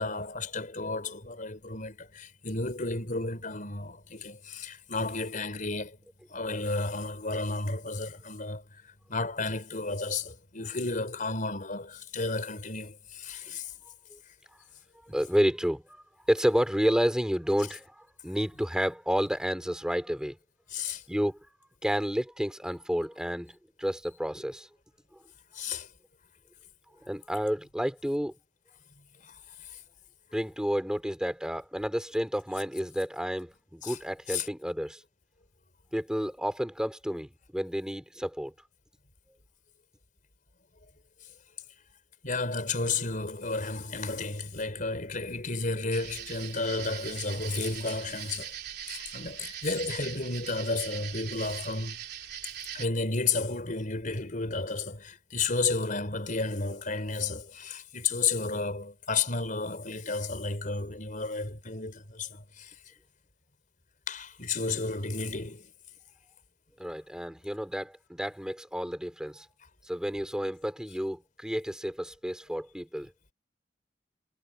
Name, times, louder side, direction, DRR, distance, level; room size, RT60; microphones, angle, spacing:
voice 1, 0.0-6.0 6.3-13.7 20.7-21.0 25.5-25.9 29.2-29.8 33.8-34.0 34.3-34.5 42.2-48.5 48.9-52.0 52.7-62.7 64.1-65.7, left 3 dB, 50° left, 5.0 m, -32 dB
voice 2, 15.1-20.4 21.1-24.7 27.0-28.3 30.3-35.0 35.9-38.5 66.8-69.5 69.9-73.1, equal, 5° right, 3.9 m, -30 dB
sound 1, 45.9-52.9, right 10 dB, 60° right, 3.5 m, -41 dB
head